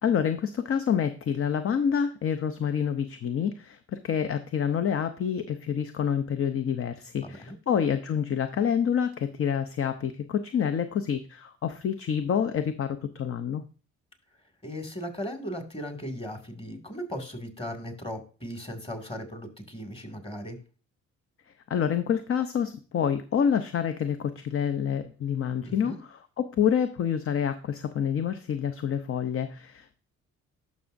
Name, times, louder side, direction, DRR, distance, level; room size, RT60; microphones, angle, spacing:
voice 1, 0.0-13.6 21.7-30.0, left 8 dB, 45° left, 9 dB, 0.7 m, -27 dB
voice 2, 7.2-7.6 14.6-20.6 25.6-26.0, equal, 20° left, 5 dB, 2.2 m, -37 dB
11.0 x 6.2 x 2.6 m, 0.37 s
cardioid pair, 90°, 30 cm